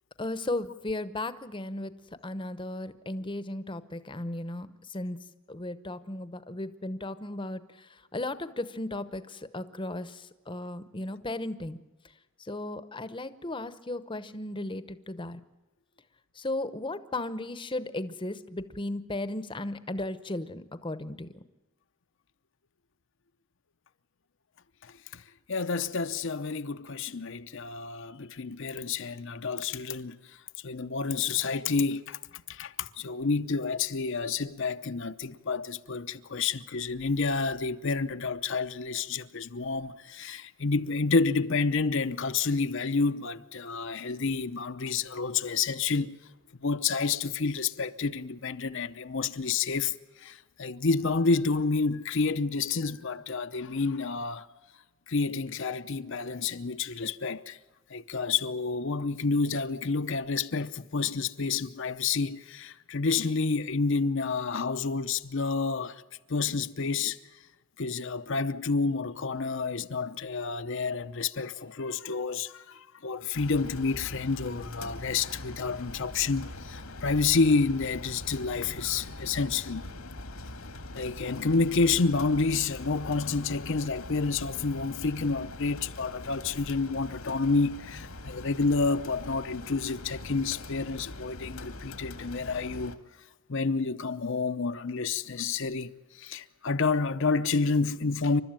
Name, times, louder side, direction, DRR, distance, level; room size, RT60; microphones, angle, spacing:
voice 1, 0.2-1.9 2.2-5.2 5.5-11.8 12.4-15.4 16.4-21.3, left 2 dB, 20° left, 0.9 m, -35 dB
voice 2, 24.8-25.2 25.5-30.2 30.6-46.2 46.6-49.9 50.2-54.5 55.1-57.6 57.9-66.0 66.3-67.2 67.8-79.9 80.9-93.0 93.5-95.9 96.2-98.4, left 4 dB, 60° left, 0.7 m, -29 dB
sound 1, 73.3-93.0, left 2 dB, 85° left, 1.9 m, -42 dB
28.5 x 13.0 x 8.9 m
head